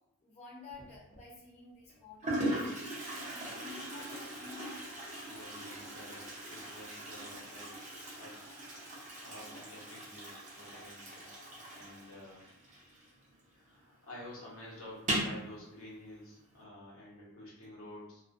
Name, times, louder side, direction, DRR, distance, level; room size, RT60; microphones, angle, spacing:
voice 1, 0.2-2.9 3.2-4.9, left 3 dB, 30° left, -8 dB, 0.5 m, -51 dB
Toilet flush, 0.7-1.2 1.9-2.0 2.2-13.5 13.8-13.9 14.2-14.3 14.9-15.4, right 1 dB, 35° right, 0.6 m, -40 dB
voice 2, 5.2-7.8 8.1-8.4 9.2-11.3 11.7-12.4 13.5-18.2, left 1 dB, 75° left, -5 dB, 0.9 m, -50 dB
2.3 x 2.1 x 2.5 m, 0.84 s
head